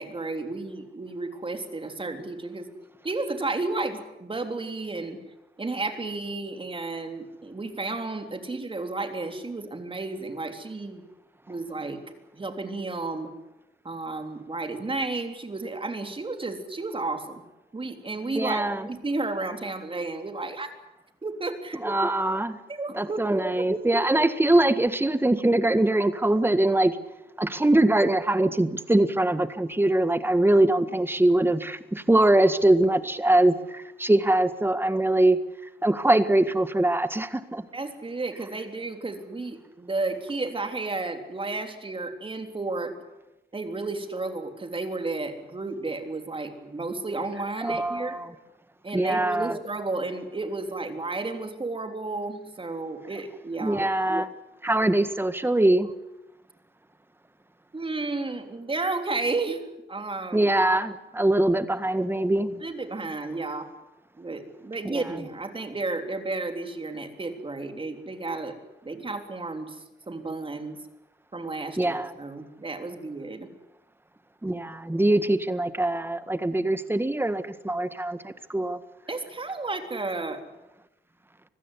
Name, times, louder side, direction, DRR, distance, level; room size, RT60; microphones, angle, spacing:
voice 1, 0.0-2.7 3.0-5.2 5.6-11.0 11.5-12.0 12.3-13.3 13.9-17.4 17.7-20.7 21.2-21.8 22.7-23.7 37.7-42.9 43.5-48.2 48.8-53.8 57.7-60.5 62.6-63.7 64.2-68.6 68.8-70.8 71.3-73.5 79.1-80.4, right 3 dB, 30° right, 7 dB, 3.4 m, -32 dB
voice 2, 18.3-18.9 21.7-22.6 22.9-27.0 27.4-35.4 35.8-37.6 47.6-48.3 48.9-49.6 53.6-54.3 54.6-55.9 60.3-62.6 64.8-65.0 71.8-72.1 74.4-78.8, right 1 dB, 10° right, 12 dB, 1.6 m, -23 dB
25.0 x 15.5 x 9.9 m, 0.96 s
cardioid pair, 90°, 19 cm